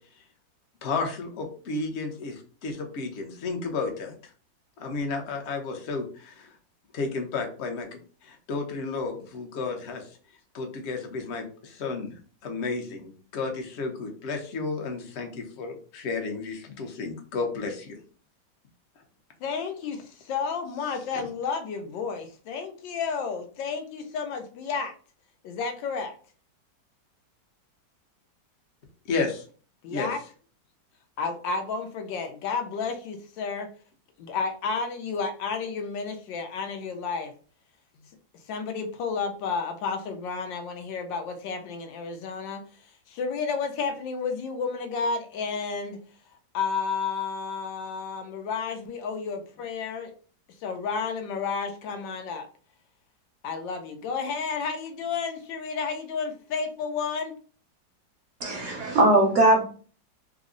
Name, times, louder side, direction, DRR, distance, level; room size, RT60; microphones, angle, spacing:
voice 1, 0.8-4.1 4.8-6.5 6.9-10.1 10.5-12.2 12.4-17.9 29.1-29.4 29.9-30.1, left 4 dB, 55° left, 4 dB, 0.8 m, -32 dB
voice 2, 19.4-24.9 25.4-26.1 29.8-30.2 31.2-33.7 34.2-37.3 38.5-42.6 43.1-46.0 46.5-50.1 50.6-52.5 53.4-57.3, left 5 dB, 85° left, 5 dB, 1.4 m, -31 dB
voice 3, 58.4-59.6, right 1 dB, 60° right, 2 dB, 0.8 m, -20 dB
3.5 x 2.0 x 3.7 m, 0.40 s
omnidirectional pair, 2.0 m